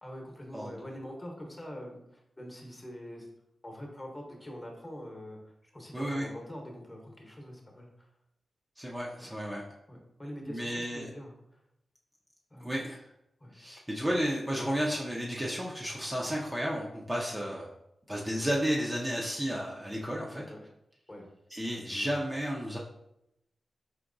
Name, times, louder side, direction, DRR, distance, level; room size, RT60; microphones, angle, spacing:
voice 1, 0.0-3.3 3.6-8.1 9.2-9.3 9.9-11.6 12.5-12.8 13.4-13.5 20.3-20.7 21.1-21.3 21.7-21.8, equal, 20° left, 0 dB, 1.0 m, -44 dB
voice 2, 5.9-6.3 8.8-9.6 10.5-11.1 12.6-13.0 13.5-17.7 18.1-20.4 21.5-22.8, equal, 15° right, -4 dB, 0.6 m, -32 dB
4.6 x 2.8 x 2.6 m, 0.82 s
cardioid pair, 70°, 0 cm